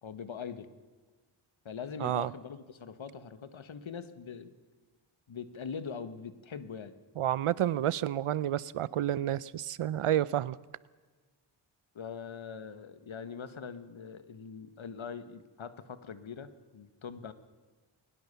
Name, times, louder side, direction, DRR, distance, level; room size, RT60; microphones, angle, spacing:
voice 1, 0.0-0.7 1.7-4.5 5.3-7.0 12.0-17.3, left 6 dB, 70° left, 1.8 m, -42 dB
voice 2, 2.0-2.3 7.2-10.6, right 11 dB, 85° right, 0.8 m, -30 dB
21.5 x 20.0 x 7.0 m
cardioid pair, 75°, 49 cm